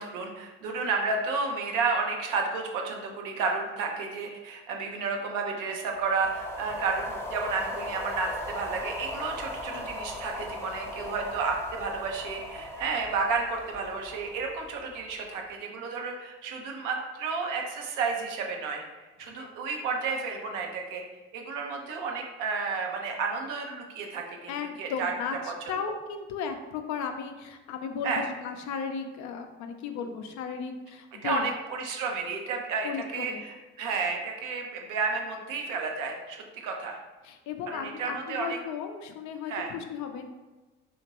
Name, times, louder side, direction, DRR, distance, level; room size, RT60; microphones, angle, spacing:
voice 1, 0.0-18.8 19.2-21.0 21.3-24.5 24.8-25.1 25.5-25.6 28.0-28.2 31.2-37.0 37.7-38.6 39.5-39.7, right 4 dB, 65° right, 2 dB, 0.6 m, -31 dB
sound 1, 5.8-15.3, left 1 dB, 10° left, 0.7 m, -39 dB
voice 2, 24.5-31.5 32.8-33.4 37.2-40.2, left 6 dB, 55° left, 6 dB, 0.5 m, -35 dB
2.9 x 2.5 x 2.9 m, 1.2 s
hypercardioid pair, 55°, 34 cm